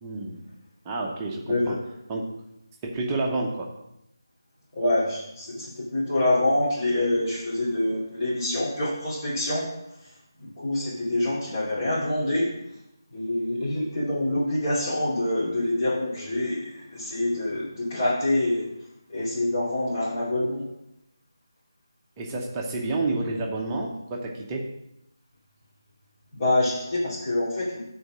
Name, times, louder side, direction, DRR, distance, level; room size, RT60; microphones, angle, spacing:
voice 1, 0.0-0.4 0.8-1.7 2.1-2.2 2.8-3.7 22.2-24.6, right 2 dB, 15° right, -1 dB, 0.8 m, -29 dB
voice 2, 1.4-1.8 4.7-9.7 10.0-12.5 13.1-18.7 19.1-20.6 26.3-27.8, left 1 dB, 35° left, -9 dB, 2.6 m, -26 dB
7.9 x 4.0 x 6.2 m, 0.86 s
figure-of-eight pair, 165°, 2 cm